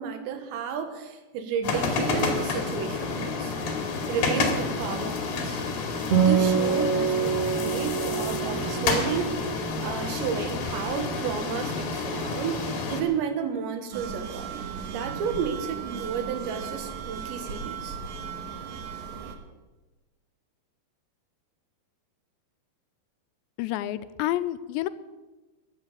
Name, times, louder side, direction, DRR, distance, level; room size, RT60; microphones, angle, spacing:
voice 1, 0.0-3.5 4.1-5.6 6.1-9.3 9.8-18.0, right 7 dB, 90° right, 8 dB, 3.7 m, -32 dB
sound 1, 1.6-13.0, left 4 dB, 60° left, 3.7 m, -29 dB
Acoustic guitar, 6.1-9.8, right 7 dB, 45° right, 2.2 m, -25 dB
sound 2, 13.9-19.4, right 6 dB, 65° right, 2.0 m, -36 dB
voice 2, 23.6-24.9, left 14 dB, 85° left, 13 dB, 2.9 m, -29 dB
15.0 x 11.5 x 7.1 m, 1.2 s
omnidirectional pair, 5.0 m